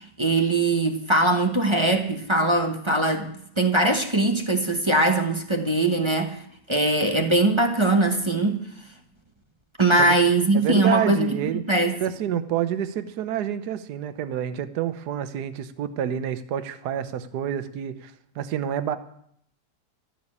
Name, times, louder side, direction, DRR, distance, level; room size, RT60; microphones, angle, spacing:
voice 1, 0.0-3.3 3.6-6.4 6.7-8.6 9.8-11.3 11.7-12.0, right 2 dB, 20° right, 0.9 m, -21 dB
voice 2, 10.5-11.6 12.0-19.0, right 10 dB, 75° right, 1.4 m, -28 dB
12.5 x 7.3 x 9.6 m
omnidirectional pair, 1.8 m